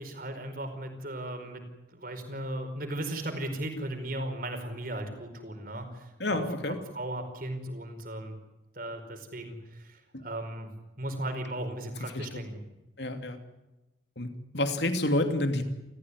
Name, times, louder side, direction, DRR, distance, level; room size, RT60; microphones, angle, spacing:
voice 1, 0.0-1.6 1.9-6.4 6.7-8.4 8.7-10.7 11.0-12.6, right 1 dB, 50° right, 6 dB, 5.0 m, -36 dB
voice 2, 6.2-6.8 10.1-10.2 12.1-12.5 13.0-13.4 14.2-15.6, left 1 dB, 60° left, 7 dB, 2.9 m, -29 dB
29.5 x 15.0 x 9.8 m, 1.0 s
head